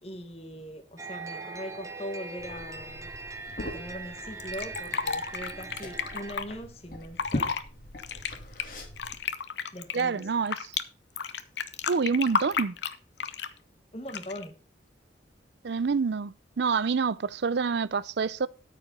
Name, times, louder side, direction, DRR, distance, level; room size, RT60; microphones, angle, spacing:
voice 1, 0.0-3.1 3.6-7.5 9.7-10.3 13.9-14.5, equal, 35° left, 1.4 m, -41 dB
sound 1, 1.0-6.3, right 3 dB, 15° right, 0.9 m, -41 dB
Liquid, 2.4-9.2, left 1 dB, 50° left, 1.9 m, -41 dB
Fill (with liquid), 4.4-6.4 7.0-7.6 8.0-10.8 11.2-13.6 14.1-14.5, left 6 dB, 70° left, 0.8 m, -32 dB
voice 2, 9.9-10.5 11.9-12.8 15.6-18.5, right 5 dB, 70° right, 0.5 m, -27 dB
13.0 x 5.0 x 5.4 m
head